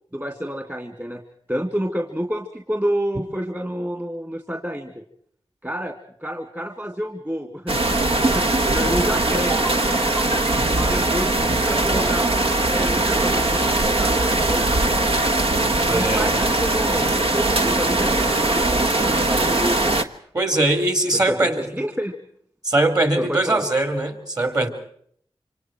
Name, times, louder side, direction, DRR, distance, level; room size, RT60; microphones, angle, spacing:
voice 1, 0.1-1.2 1.5-5.0 5.6-5.9 6.2-7.7 8.2-9.9 10.7-15.1 15.9-20.0 21.1-22.2 23.2-23.7, equal, 20° right, 4 dB, 2.6 m, -29 dB
sound 1, 7.7-20.0, right 2 dB, 65° right, 1.5 m, -20 dB
sound 2, 7.7-8.2 8.5-9.0 9.3-9.8 10.2-10.9, right 2 dB, 90° right, 3.7 m, -33 dB
voice 2, 15.9-16.3 20.3-21.6 22.6-24.7, right 2 dB, 35° right, 8 dB, 4.6 m, -21 dB
28.0 x 26.0 x 4.6 m, 0.63 s
cardioid pair, 55°, 10 cm